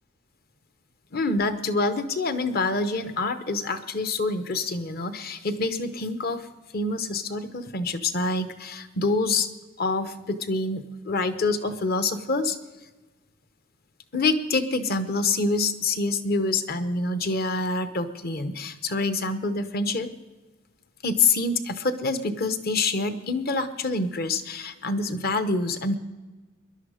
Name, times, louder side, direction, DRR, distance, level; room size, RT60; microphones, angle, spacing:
voice 1, 1.1-6.5 6.7-9.5 9.8-12.6 14.1-20.1 21.0-26.0, left 3 dB, 50° left, 10 dB, 0.9 m, -26 dB
21.0 x 11.5 x 5.0 m, 1.2 s
head